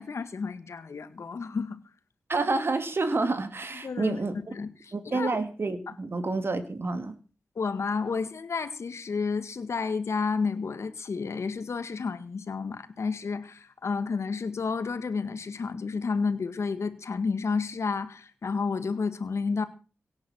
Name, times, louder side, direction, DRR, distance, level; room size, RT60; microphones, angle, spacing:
voice 1, 0.0-1.8 3.8-4.2 4.5-5.4 5.9-6.0 7.6-19.6, left 4 dB, 75° left, 1.8 m, -31 dB
voice 2, 2.3-4.3 4.9-7.1, right 3 dB, 55° right, 2.3 m, -28 dB
17.5 x 9.6 x 6.3 m
cardioid pair, 55°, 5 cm